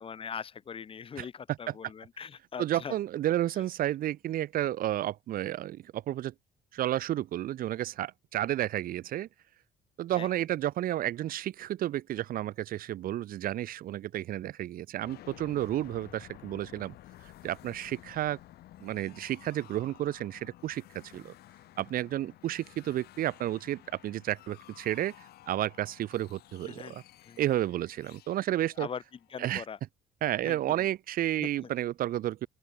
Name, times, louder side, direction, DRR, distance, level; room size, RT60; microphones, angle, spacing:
voice 1, 0.0-3.0 3.6-3.7 10.2-10.5 26.6-27.4 28.7-29.8 30.4-30.9 31.4-31.7, left 7 dB, 35° left, 0.8 m, -42 dB
voice 2, 2.6-6.3 6.7-9.3 10.0-16.9 17.4-18.4 18.8-21.3 21.8-25.1 25.5-27.0 27.4-28.9 29.4-29.6 30.2-32.5, right 13 dB, 60° right, 0.7 m, -31 dB
sound 1, 15.0-29.7, left 15 dB, 70° left, 1.3 m, -54 dB
open air
cardioid pair, 110°, 17 cm